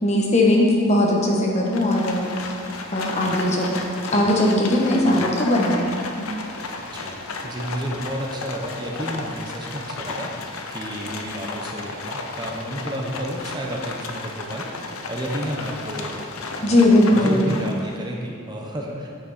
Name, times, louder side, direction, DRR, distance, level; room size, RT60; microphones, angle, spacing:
voice 1, 0.0-2.5 2.9-3.8 4.1-5.9 6.1-6.2 16.6-17.4, left 1 dB, 30° left, -1 dB, 1.1 m, -19 dB
Livestock farm animals working animals, 1.6-18.0, left 3 dB, 90° left, 0.8 m, -33 dB
voice 2, 6.9-19.1, right 1 dB, 20° right, -1 dB, 0.8 m, -31 dB
10.0 x 6.0 x 4.2 m, 2.3 s
head